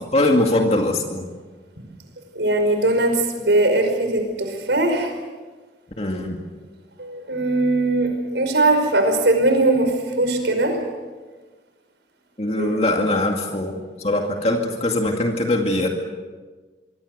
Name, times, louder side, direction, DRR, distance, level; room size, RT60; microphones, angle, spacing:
voice 1, 0.1-1.3 6.0-6.4 12.4-15.9, left 1 dB, 35° left, 2 dB, 2.3 m, -21 dB
voice 2, 2.4-5.1 7.0-10.8 12.6-12.8, right 2 dB, 75° right, 6 dB, 5.4 m, -20 dB
25.0 x 24.5 x 6.8 m, 1.4 s
head